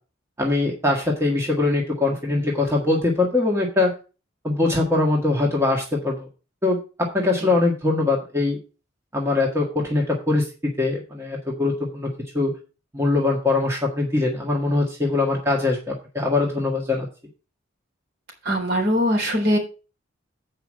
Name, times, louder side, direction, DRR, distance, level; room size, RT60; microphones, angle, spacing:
voice 1, 0.4-3.9 4.4-6.3 6.6-8.6 9.1-12.1 12.3-12.5 12.9-17.1, left 2 dB, 15° right, -1 dB, 1.6 m, -22 dB
voice 2, 18.4-19.6, equal, 55° right, 0 dB, 3.5 m, -21 dB
8.2 x 5.0 x 6.1 m, 0.33 s
head